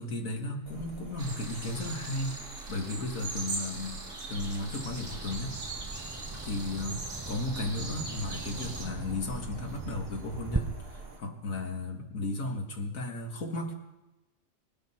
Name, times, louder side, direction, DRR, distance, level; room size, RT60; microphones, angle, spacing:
voice 1, 0.0-2.4 2.7-4.0 4.3-5.6 6.5-13.7, left 2 dB, 90° left, 2 dB, 2.3 m, -35 dB
sound 1, 0.6-11.2, right 3 dB, 45° right, 1.9 m, -46 dB
sound 2, 1.2-8.9, right 2 dB, 75° right, 2.8 m, -40 dB
Bird vocalization bird call bird song, 4.8-10.6, right 3 dB, 20° right, 0.9 m, -40 dB
25.5 x 12.0 x 4.4 m, 1.1 s
omnidirectional pair, 1.4 m